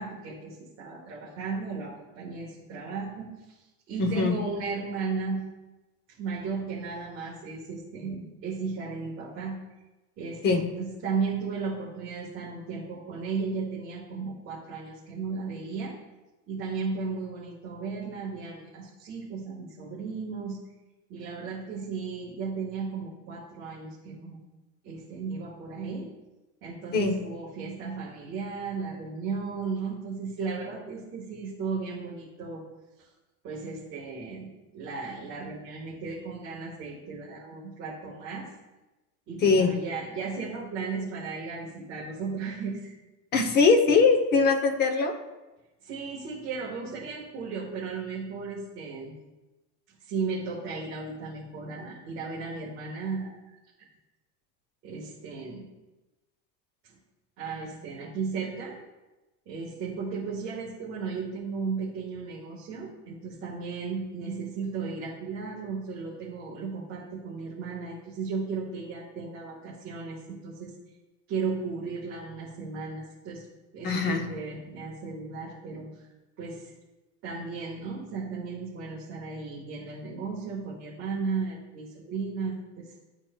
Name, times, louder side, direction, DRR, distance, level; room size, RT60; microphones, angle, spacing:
voice 1, 0.0-5.4 6.2-9.6 10.2-15.9 16.5-20.6 21.1-24.4 24.8-26.1 26.6-32.6 33.0-33.1 33.4-38.5 39.3-42.9 45.8-49.1 50.0-53.6 54.8-55.6 56.8-56.9 57.4-58.8 59.4-70.7 71.3-73.4 73.7-75.9 76.4-76.7 77.2-82.9, right 4 dB, 35° right, -6 dB, 1.5 m, -35 dB
voice 2, 4.0-4.4 10.4-10.6 26.9-27.2 39.4-39.7 43.3-45.1 73.8-74.2, left 4 dB, 25° left, 6 dB, 0.7 m, -21 dB
12.0 x 4.4 x 2.2 m, 1.1 s
supercardioid pair, 160°, 40 cm